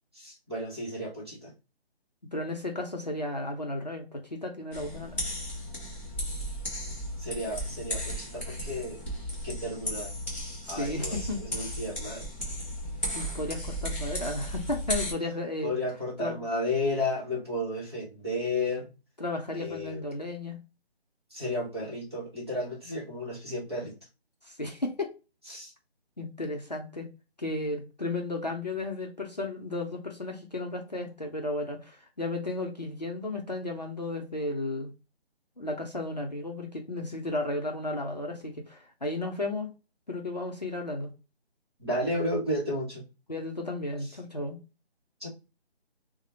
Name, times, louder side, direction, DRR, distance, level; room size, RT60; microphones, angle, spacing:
voice 1, 0.1-1.5 7.2-9.0 9.4-10.2 10.7-12.3 15.6-18.9 19.5-20.0 21.3-24.0 25.5-25.7 41.8-43.0 45.2-45.3, left 1 dB, 25° right, 1.0 m, -33 dB
voice 2, 2.3-5.2 10.6-11.7 13.1-15.8 16.2-16.4 19.2-20.6 24.4-25.1 26.2-27.1 27.4-34.9 35.6-39.7 40.1-41.1 43.3-44.6, left 2 dB, 40° left, 0.5 m, -34 dB
sound 1, 4.7-15.1, equal, 10° left, 1.0 m, -35 dB
3.8 x 2.1 x 2.9 m
hypercardioid pair, 180°, 32 cm